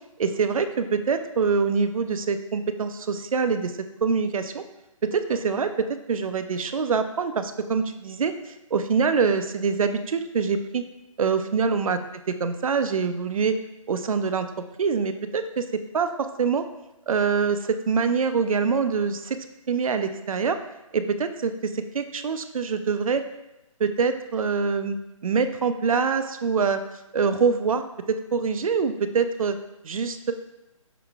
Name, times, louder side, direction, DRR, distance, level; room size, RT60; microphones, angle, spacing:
voice 1, 0.2-3.7 4.0-4.6 5.0-10.8 11.2-12.0 12.4-13.6 13.9-14.5 14.8-16.6 17.1-20.6 20.9-23.2 23.8-25.0 25.2-26.8 27.1-29.6 29.8-30.3, right 5 dB, 75° right, 9 dB, 0.4 m, -25 dB
5.6 x 3.8 x 2.3 m, 0.92 s
hypercardioid pair, 155°, 18 cm